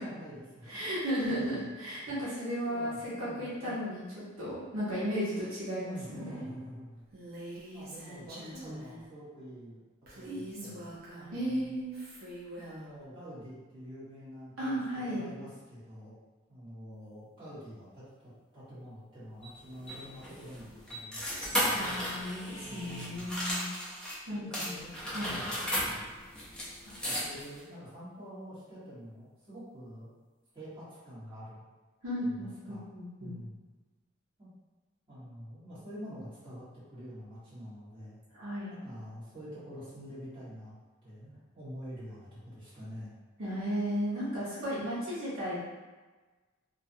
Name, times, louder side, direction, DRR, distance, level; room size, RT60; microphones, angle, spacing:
voice 1, 0.0-0.9 1.2-1.7 2.6-3.8 5.6-7.0 7.7-9.8 10.1-11.8 12.6-16.1 16.5-21.7 22.6-23.3 24.3-26.1 27.0-30.1 30.5-31.6 32.2-32.8 33.2-33.5 34.4-34.5 35.1-36.6 36.9-38.1 38.7-40.7 41.0-43.1, equal, 25° right, -13 dB, 1.2 m, -47 dB
voice 2, 0.7-4.0 4.4-6.5 10.2-10.7 11.3-11.9 14.6-15.2 21.7-23.7 24.3-25.3 32.0-33.3 38.3-38.7 43.4-45.6, equal, 75° right, -9 dB, 0.9 m, -35 dB
Female speech woman speaking, 7.1-9.0 10.1-11.5 11.9-12.9, right 1 dB, 45° right, 0.6 m, -45 dB
sound 1, 19.4-24.2 24.5-27.6, equal, 5° left, 0.5 m, -35 dB
2.5 x 2.3 x 2.6 m, 1.3 s
head